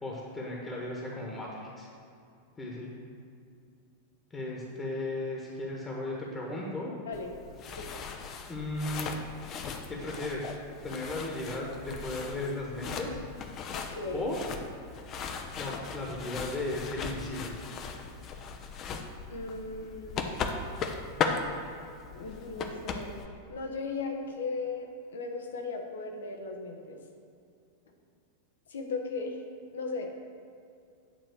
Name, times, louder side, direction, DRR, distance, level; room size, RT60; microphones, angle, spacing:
voice 1, 0.0-1.9 2.6-2.9 4.3-6.9 8.5-9.1 9.9-10.5 10.8-13.2 14.1-14.4 15.6-17.5, left 2 dB, 15° left, -3 dB, 1.4 m, -35 dB
sound 1, 7.1-23.3, left 5 dB, 35° left, 0.7 m, -38 dB
voice 2, 13.7-14.3 19.3-20.4 22.1-23.2 23.5-27.0 28.7-29.4 29.7-30.1, left 3 dB, 65° left, 3 dB, 1.1 m, -37 dB
9.0 x 4.2 x 6.6 m, 2.5 s
figure-of-eight pair, 90°, 0 cm